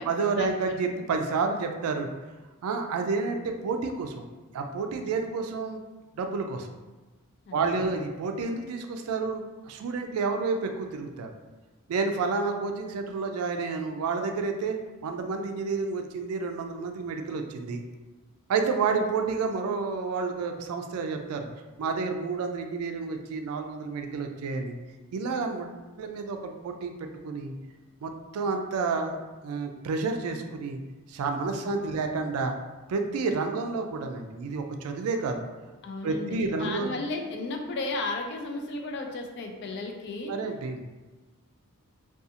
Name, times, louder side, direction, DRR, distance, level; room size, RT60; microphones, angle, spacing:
voice 1, 0.0-2.1 2.6-4.3 4.5-5.8 6.2-6.7 7.5-11.3 11.9-17.8 18.5-21.5 21.8-24.7 25.1-25.7 26.0-26.9 27.2-27.5 28.0-30.8 31.1-32.6 32.9-35.4 36.0-36.9 40.3-40.8, right 4 dB, 85° right, 5 dB, 0.3 m, -30 dB
voice 2, 7.5-7.9 31.6-32.1 35.8-40.3, left 3 dB, 50° left, 3 dB, 0.3 m, -34 dB
2.4 x 2.3 x 2.7 m, 1.2 s
head